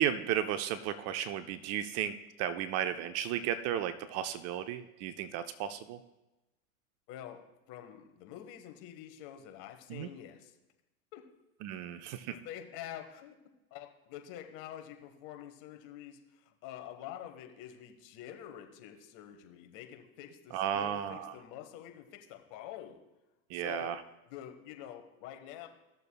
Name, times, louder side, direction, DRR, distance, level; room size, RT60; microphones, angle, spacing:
voice 1, 0.0-6.0 9.9-10.1 11.6-12.4 20.5-21.3 23.5-24.0, right 10 dB, 40° right, 11 dB, 0.5 m, -34 dB
voice 2, 7.1-10.5 11.1-11.2 12.3-13.3 13.7-23.0 23.5-24.0 24.3-25.7, left 11 dB, 45° left, 6 dB, 1.3 m, -47 dB
15.5 x 6.7 x 2.3 m, 1.0 s
hypercardioid pair, 100°, 42 cm